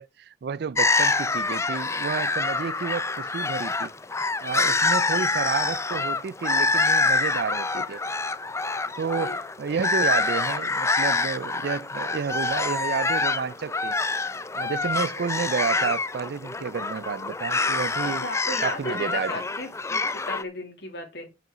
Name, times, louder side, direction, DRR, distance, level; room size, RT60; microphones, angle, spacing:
voice 1, 0.0-3.9 4.4-8.0 9.0-14.0 14.5-18.2 18.6-19.4, right 6 dB, 65° right, 0.4 m, -31 dB
sound 1, 0.8-20.4, left 3 dB, 15° left, 0.6 m, -26 dB
voice 2, 18.0-21.3, left 2 dB, 70° left, 2.8 m, -36 dB
9.2 x 5.7 x 6.1 m
head